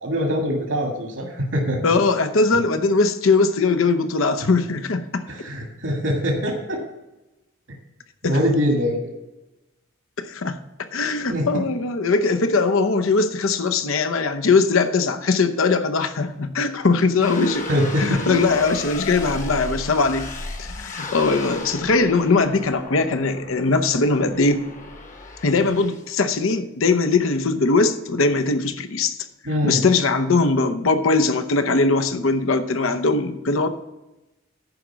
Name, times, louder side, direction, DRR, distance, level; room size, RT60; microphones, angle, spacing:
voice 1, 0.0-1.9 5.3-6.8 8.2-9.0 11.3-11.6 17.7-18.3 29.5-29.8, equal, 80° right, 0 dB, 1.8 m, -23 dB
voice 2, 1.8-5.2 8.2-8.4 10.2-10.6 10.9-17.7 18.0-20.3 20.6-24.7 25.4-29.2 29.6-33.7, left 3 dB, 75° left, 9 dB, 0.7 m, -20 dB
sound 1, 17.2-26.1, left 2 dB, 35° left, 1.1 m, -34 dB
11.0 x 5.1 x 7.2 m, 1.0 s
head